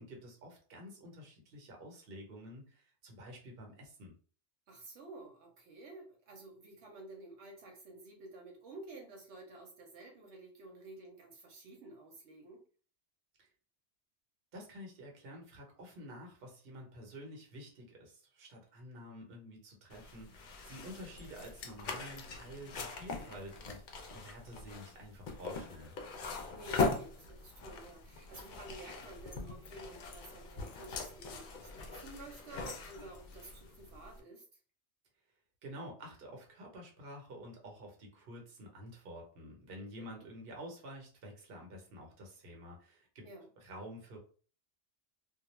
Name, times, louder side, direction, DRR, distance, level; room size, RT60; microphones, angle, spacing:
voice 1, 0.0-4.1 13.4-13.5 14.5-25.9 35.6-43.2 43.6-44.2, equal, 60° right, 1 dB, 1.0 m, -49 dB
voice 2, 4.7-12.6 20.8-21.1 26.5-34.4 40.0-40.3 43.2-43.5, right 2 dB, 80° right, 1 dB, 0.9 m, -52 dB
sound 1, 19.9-34.2, left 4 dB, 60° left, 0.6 m, -41 dB
2.3 x 2.1 x 3.0 m, 0.41 s
omnidirectional pair, 1.2 m